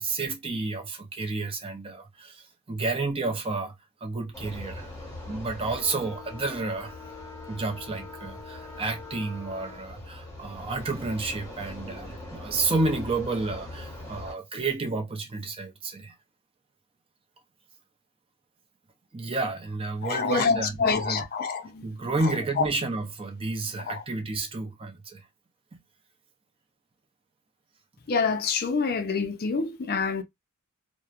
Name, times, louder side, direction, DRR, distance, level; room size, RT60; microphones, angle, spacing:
voice 1, 0.0-3.7 4.0-4.9 5.3-6.9 7.5-16.1 19.1-21.2 21.8-25.2, right 3 dB, 25° right, 0.6 m, -31 dB
sound 1, 4.3-14.3, left 2 dB, 15° left, 0.9 m, -41 dB
voice 2, 20.0-21.9 22.6-22.7 23.9-24.0 28.1-30.2, left 5 dB, 45° left, 0.4 m, -26 dB
2.8 x 2.0 x 2.4 m
head